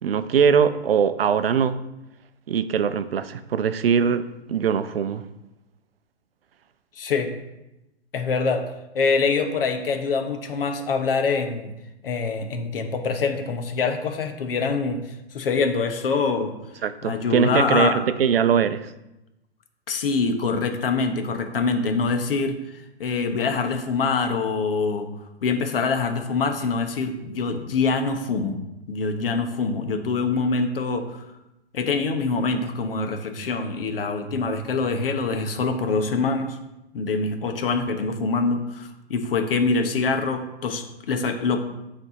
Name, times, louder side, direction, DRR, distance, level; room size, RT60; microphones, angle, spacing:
voice 1, 0.0-1.8 2.5-5.2 16.8-18.9, right 7 dB, 60° right, 12 dB, 0.5 m, -21 dB
voice 2, 7.0-7.3 8.1-8.7 8.9-11.7 12.0-15.0 15.3-16.5 17.0-18.0 19.9-22.6 23.0-25.1 25.4-28.6 28.9-31.2 31.7-36.6 36.9-41.6, left 4 dB, 55° left, 6 dB, 1.0 m, -24 dB
9.2 x 3.4 x 3.9 m, 0.93 s
figure-of-eight pair, 120°, 33 cm